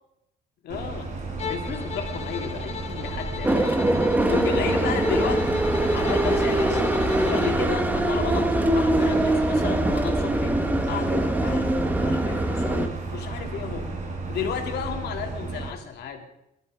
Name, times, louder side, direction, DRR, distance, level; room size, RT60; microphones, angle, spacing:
voice 1, 0.6-1.1 1.5-3.8 4.3-5.7 5.9-6.9 7.3-10.6 10.9-11.8 12.0-13.9 14.3-16.3, left 7 dB, 70° left, 3 dB, 2.7 m, -33 dB
sound 1, 0.7-15.7, right 3 dB, 45° right, 3.8 m, -33 dB
Bowed string instrument, 1.4-7.6, left 8 dB, 35° left, 0.8 m, -37 dB
sound 2, 3.4-12.9, right 1 dB, 10° right, 1.1 m, -23 dB
22.5 x 12.5 x 4.9 m, 0.85 s
cardioid pair, 160°, 18 cm